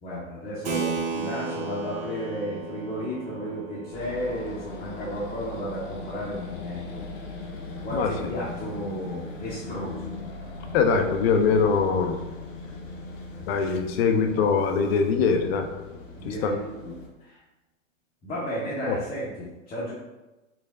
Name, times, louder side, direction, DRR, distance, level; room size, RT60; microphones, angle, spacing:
voice 1, 0.0-7.0 7.8-10.1 16.2-17.4 18.2-19.9, equal, 15° left, -9 dB, 0.7 m, -33 dB
Keyboard (musical), 0.6-6.7, right 4 dB, 20° right, 0.4 m, -35 dB
sound 1, 3.9-17.1, left 3 dB, 75° left, 1.0 m, -39 dB
voice 2, 10.7-12.2 13.4-15.7 16.2-16.5 18.9-19.0, left 5 dB, 50° left, 5 dB, 0.6 m, -22 dB
4.6 x 2.0 x 3.5 m, 1.1 s
hypercardioid pair, 125°, 39 cm